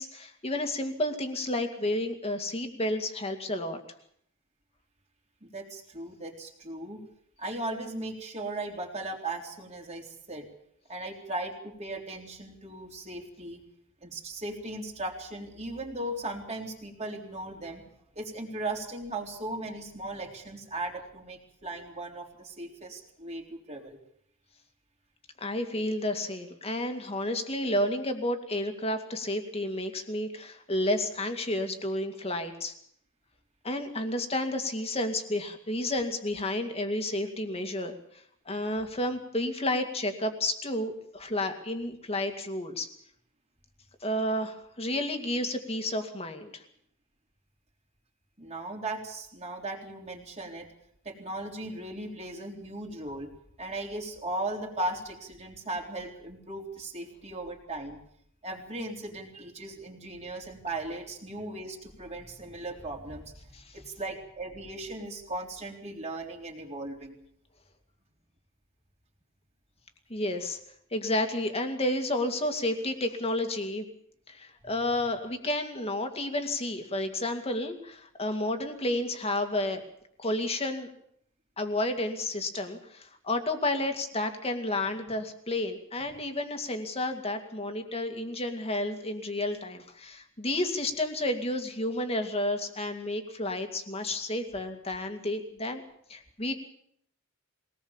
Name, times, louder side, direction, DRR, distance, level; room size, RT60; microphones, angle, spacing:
voice 1, 0.0-3.8 25.4-32.7 33.6-38.0 38.5-42.9 44.0-46.6 63.5-63.7 70.1-70.6 70.9-73.8 74.3-79.8 80.2-80.9 81.6-95.8 96.1-96.5, left 1 dB, 30° left, 6 dB, 2.3 m, -31 dB
voice 2, 5.4-7.0 7.4-10.5 10.9-13.6 14.0-17.9 18.2-24.0 48.4-50.7 51.0-53.3 53.6-58.0 58.4-67.2, right 2 dB, 30° right, 1 dB, 3.7 m, -37 dB
22.5 x 18.5 x 7.2 m, 0.70 s
head